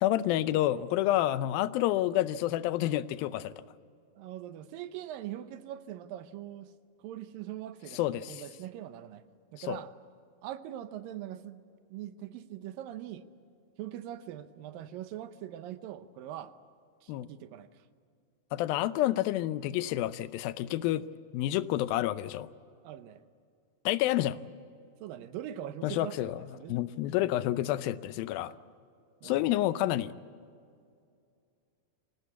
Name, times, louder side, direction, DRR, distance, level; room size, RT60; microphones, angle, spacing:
voice 1, 0.0-3.5 7.9-8.4 9.7-9.8 17.1-17.3 18.5-21.1 21.3-22.5 23.9-24.4 25.8-26.4 26.7-28.5 29.2-30.1, left 14 dB, 90° left, 15 dB, 2.5 m, -29 dB
voice 2, 4.2-6.7 7.0-9.2 9.5-9.9 10.4-11.6 11.9-13.3 13.8-16.5 17.0-17.7 22.8-23.2 25.0-26.8 28.4-28.5 29.2-29.5, right 12 dB, 80° right, 11 dB, 2.5 m, -42 dB
25.5 x 17.5 x 8.2 m, 2.3 s
omnidirectional pair, 4.1 m